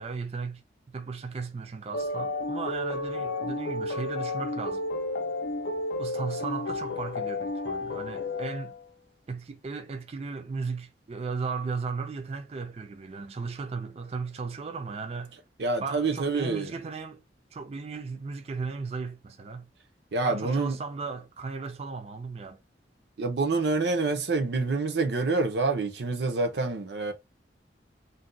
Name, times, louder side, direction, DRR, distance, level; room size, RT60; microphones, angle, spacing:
voice 1, 0.0-4.8 6.0-8.7 9.3-15.4 15.8-17.2 17.5-19.7 20.2-22.6, right 4 dB, 35° right, 0.4 m, -36 dB
sound 1, 1.9-8.9, left 2 dB, 90° left, 0.5 m, -32 dB
voice 2, 15.6-16.7 20.1-20.8 23.2-27.1, right 3 dB, 70° right, 0.7 m, -27 dB
2.6 x 2.2 x 3.8 m
head